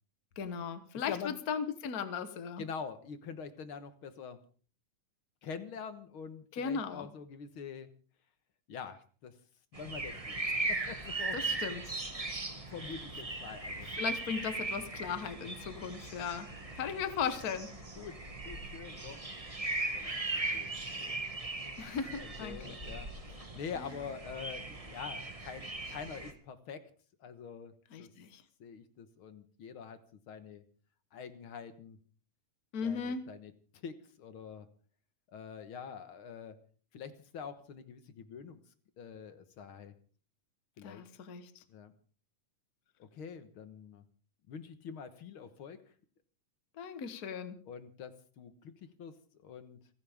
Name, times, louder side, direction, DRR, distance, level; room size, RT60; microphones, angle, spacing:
voice 1, 0.4-2.6 6.5-7.1 11.3-11.9 14.0-16.5 16.7-17.7 21.8-22.7 27.9-28.4 32.7-33.2 40.8-41.6 46.8-47.6, left 6 dB, 85° left, 10 dB, 0.8 m, -37 dB
voice 2, 2.6-4.4 5.4-7.9 8.7-9.3 9.7-11.7 12.7-13.9 18.0-18.2 18.4-19.2 19.9-20.2 20.5-21.2 21.5-21.7 22.2-26.9 27.2-27.7 28.0-28.1 28.6-30.6 31.1-32.0 32.8-34.7 35.3-36.6 36.9-38.6 39.0-39.9 40.8-41.0 41.7-41.9 43.0-44.0 44.5-45.8 47.7-49.8, left 6 dB, 55° left, 10 dB, 1.7 m, -45 dB
sound 1, 9.7-26.3, right 2 dB, 20° right, 0.9 m, -39 dB
29.5 x 11.0 x 3.6 m, 0.41 s
omnidirectional pair, 3.7 m